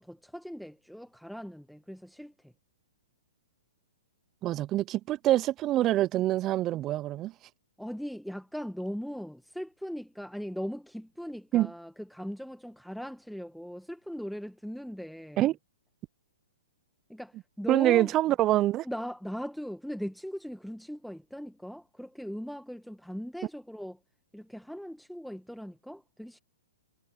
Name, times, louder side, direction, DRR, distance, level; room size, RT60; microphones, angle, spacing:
voice 1, 0.0-2.5 7.8-15.5 17.1-18.1 18.8-24.0 24.3-26.4, equal, ahead, 1.2 m, -39 dB
voice 2, 4.4-7.3 11.5-11.7 15.4-15.6 17.7-18.9, right 14 dB, 30° right, 0.4 m, -25 dB
hypercardioid pair, 130°, 0 cm